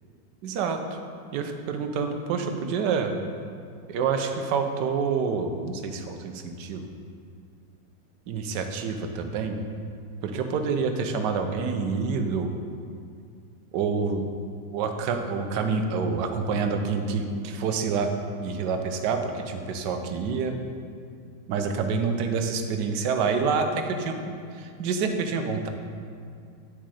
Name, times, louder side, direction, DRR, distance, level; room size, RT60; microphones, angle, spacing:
voice 1, 0.4-1.0 1.3-3.1 3.9-6.8 8.3-9.6 10.2-12.5 13.7-14.2 14.7-18.1 18.4-20.5 21.5-25.7, right 5 dB, 75° right, 6 dB, 1.3 m, -27 dB
9.4 x 6.1 x 4.2 m, 2.3 s
omnidirectional pair, 1.9 m